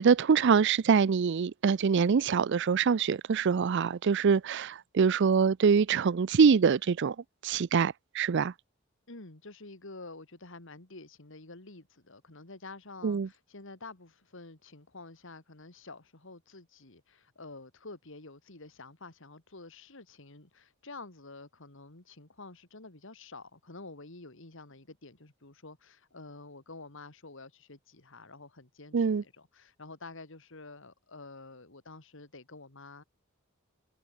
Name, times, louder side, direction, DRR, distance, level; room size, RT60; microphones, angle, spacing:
voice 1, 0.0-7.2 7.4-8.5 13.0-13.3 28.9-29.2, right 6 dB, 55° right, 0.4 m, -24 dB
voice 2, 9.1-33.0, left 3 dB, 60° left, 2.4 m, -49 dB
head